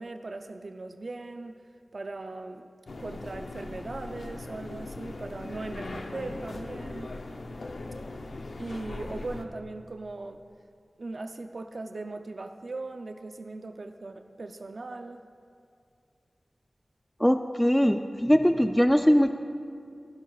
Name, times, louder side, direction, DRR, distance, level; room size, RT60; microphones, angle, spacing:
voice 1, 0.0-1.6 1.9-2.7 3.0-7.1 8.6-10.4 11.0-15.2, right 2 dB, 65° right, 7 dB, 0.5 m, -39 dB
sound 1, 2.9-9.4, left 2 dB, 75° left, 0.7 m, -39 dB
voice 2, 17.2-19.3, equal, 5° left, 7 dB, 0.3 m, -21 dB
23.0 x 10.5 x 2.4 m, 2.3 s
wide cardioid pair, 80°, 0 cm